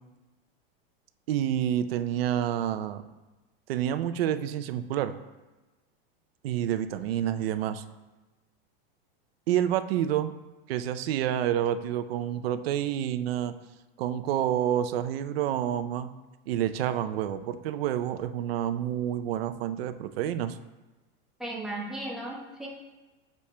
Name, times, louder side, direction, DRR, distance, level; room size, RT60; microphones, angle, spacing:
voice 1, 1.3-3.0 3.7-5.1 6.4-7.8 9.5-10.3 10.7-13.5 14.0-16.1 16.5-20.6, right 10 dB, 85° right, 10 dB, 0.6 m, -28 dB
voice 2, 21.4-22.7, right 1 dB, ahead, -6 dB, 1.0 m, -35 dB
8.4 x 6.4 x 2.2 m, 1.1 s
supercardioid pair, 170°, 29 cm